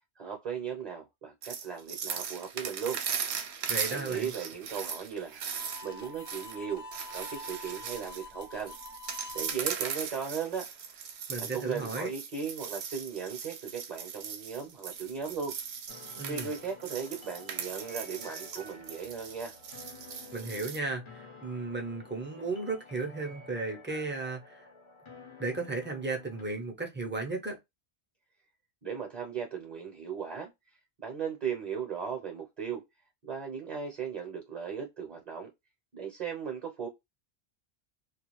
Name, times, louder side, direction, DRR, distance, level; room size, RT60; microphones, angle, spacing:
voice 1, 0.2-3.0 3.9-5.4 5.8-6.9 7.1-8.7 9.3-10.7 11.4-15.5 16.3-19.5 28.8-30.5 31.0-32.8 33.3-35.5 35.9-36.9, right 7 dB, 45° right, 0.8 m, -37 dB
sound 1, 1.4-20.8, right 7 dB, 75° right, 0.8 m, -39 dB
voice 2, 3.7-4.3 11.3-12.1 16.2-16.5 20.3-24.7 25.4-27.6, right 3 dB, 15° right, 0.5 m, -35 dB
Harmonica, 5.5-9.5, left 2 dB, 85° left, 0.9 m, -46 dB
sound 2, 15.9-26.4, left 3 dB, 35° left, 0.6 m, -51 dB
2.4 x 2.3 x 2.9 m
omnidirectional pair, 1.1 m